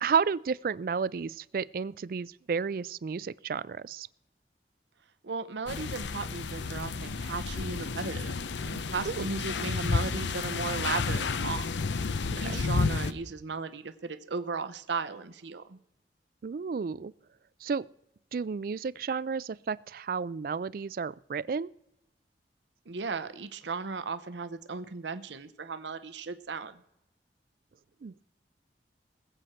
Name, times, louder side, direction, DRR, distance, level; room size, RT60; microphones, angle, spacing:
voice 1, 0.0-4.1 9.1-9.3 12.3-12.6 16.4-17.1 17.6-17.9 18.3-21.7 28.0-28.1, right 5 dB, 50° right, 21 dB, 0.3 m, -32 dB
voice 2, 5.2-8.3 8.6-11.7 12.4-15.8 22.9-26.8, right 4 dB, 90° right, 11 dB, 0.8 m, -36 dB
sound 1, 5.7-13.1, left 4 dB, 90° left, 0.7 m, -31 dB
20.5 x 7.9 x 4.4 m, 0.85 s
head